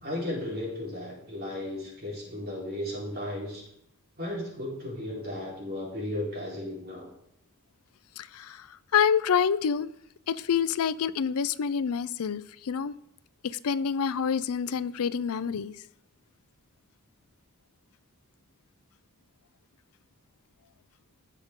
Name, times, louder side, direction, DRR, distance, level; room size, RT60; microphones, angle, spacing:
voice 1, 0.0-3.6 4.2-7.1, left 1 dB, 45° right, -4 dB, 3.7 m, -35 dB
voice 2, 8.2-9.9 10.3-12.9 13.4-15.8, left 7 dB, 75° left, 16 dB, 0.5 m, -27 dB
17.5 x 6.6 x 3.7 m, 0.75 s
head